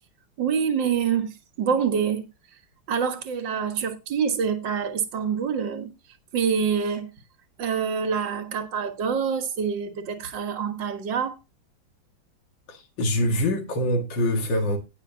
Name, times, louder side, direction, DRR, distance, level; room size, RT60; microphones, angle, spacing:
voice 1, 0.4-2.3 2.9-5.9 6.3-7.1 7.6-11.4, right 6 dB, 65° right, 2.2 m, -26 dB
voice 2, 12.7-14.8, left 1 dB, 70° left, 2.5 m, -24 dB
18.5 x 6.6 x 2.8 m
omnidirectional pair, 2.1 m